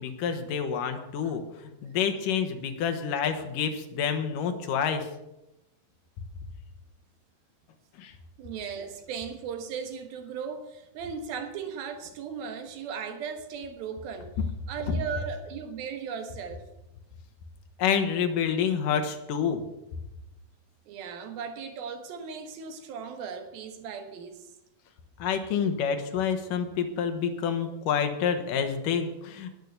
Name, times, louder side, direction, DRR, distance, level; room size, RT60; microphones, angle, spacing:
voice 1, 0.0-5.1 8.0-8.1 17.8-19.6 25.2-29.5, left 7 dB, 65° left, 7 dB, 2.7 m, -28 dB
voice 2, 8.4-14.3 14.7-16.6 20.9-24.5, right 6 dB, 75° right, 7 dB, 3.2 m, -37 dB
19.0 x 6.4 x 6.8 m, 0.94 s
omnidirectional pair, 4.3 m